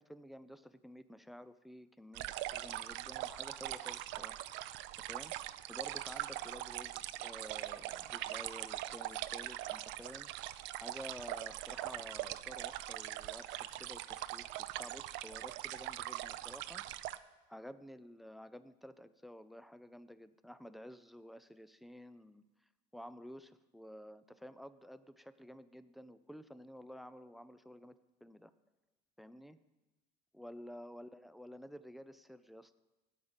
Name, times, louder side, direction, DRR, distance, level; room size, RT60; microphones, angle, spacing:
voice 1, 0.0-4.4 5.0-5.3 5.7-10.3 10.7-14.5 14.8-16.8 17.5-22.4 22.9-28.5 29.2-29.6 30.3-32.8, equal, ahead, 14 dB, 0.5 m, -52 dB
sound 1, 2.1-17.2, right 15 dB, 65° right, 0.5 m, -42 dB
12.0 x 8.7 x 5.1 m, 1.1 s
supercardioid pair, 95°, 21 cm